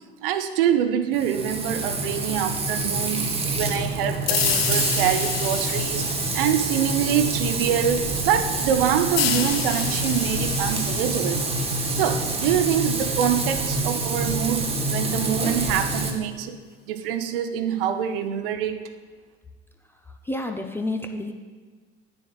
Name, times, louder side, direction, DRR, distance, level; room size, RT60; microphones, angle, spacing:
voice 1, 0.2-11.4 11.9-16.6 16.9-18.9, right 9 dB, 60° right, 10 dB, 0.6 m, -25 dB
Frying (food), 1.1-16.1, right 2 dB, 20° right, 0.9 m, -26 dB
sound 1, 4.3-7.7 9.2-12.7, left 10 dB, 70° left, 0.5 m, -30 dB
voice 2, 20.3-21.3, left 2 dB, 10° left, 3 dB, 0.3 m, -29 dB
9.7 x 6.9 x 2.3 m, 1.5 s
figure-of-eight pair, 65°, 31 cm